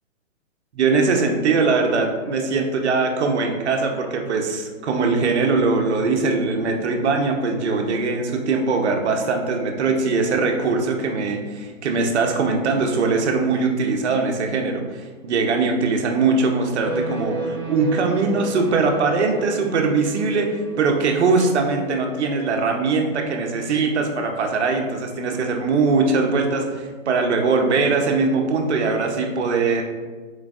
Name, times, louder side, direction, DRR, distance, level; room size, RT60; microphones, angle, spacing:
voice 1, 0.7-20.5 20.8-29.8, right 4 dB, 60° right, 3 dB, 0.8 m, -21 dB
sound 1, 16.8-23.5, right 2 dB, 20° right, 0.5 m, -33 dB
4.7 x 3.9 x 2.4 m, 1.4 s
hypercardioid pair, 155°, 38 cm